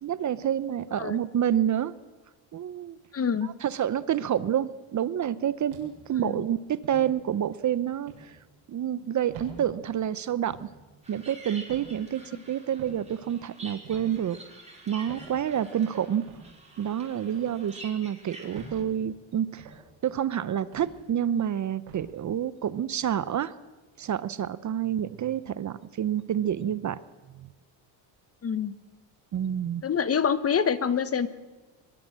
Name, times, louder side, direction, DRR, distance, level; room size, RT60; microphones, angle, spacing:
voice 1, 0.0-1.9 2.5-3.0 3.4-8.4 8.7-10.7 11.1-12.2 12.5-14.4 14.9-16.3 16.8-19.7 20.0-23.5 24.0-27.0 27.3-27.5 29.3-29.8, right 10 dB, 35° right, 16 dB, 0.8 m, -28 dB
voice 2, 3.1-3.5 6.2-6.4 12.3-12.4 28.4-28.7 29.8-31.3, left 7 dB, 30° left, 13 dB, 1.1 m, -26 dB
sound 1, 5.7-6.2 6.8-7.1 8.1-8.3 9.3-9.6 10.5-10.7 11.7-11.9 12.8-13.0 13.8-14.1 15.1-15.3 16.2-16.4 17.3-17.6 18.5-18.8 19.6-19.8 20.7-21.0 21.9-22.1, right 5 dB, 80° right, 7.4 m, -45 dB
sound 2, 11.0-18.8, right 2 dB, 15° right, 5.7 m, -48 dB
22.5 x 22.0 x 7.5 m, 1.2 s
cardioid pair, 125°, 48 cm